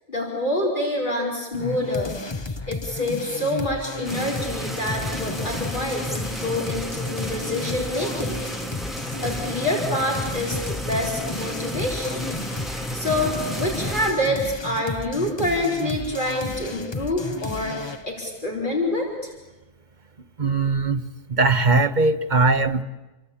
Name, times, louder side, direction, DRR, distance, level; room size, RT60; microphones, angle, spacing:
voice 1, 0.1-2.1 2.5-8.4 9.2-12.3 12.7-19.3, left 1 dB, 45° left, -1 dB, 4.9 m, -27 dB
sound 1, 1.5-18.1, left 3 dB, 25° left, 1.0 m, -33 dB
sound 2, 4.0-14.1, right 1 dB, ahead, 2.8 m, -33 dB
voice 2, 20.4-21.0 21.3-22.8, right 3 dB, 45° right, 9 dB, 1.4 m, -20 dB
29.5 x 23.0 x 8.6 m, 1.1 s
omnidirectional pair, 1.1 m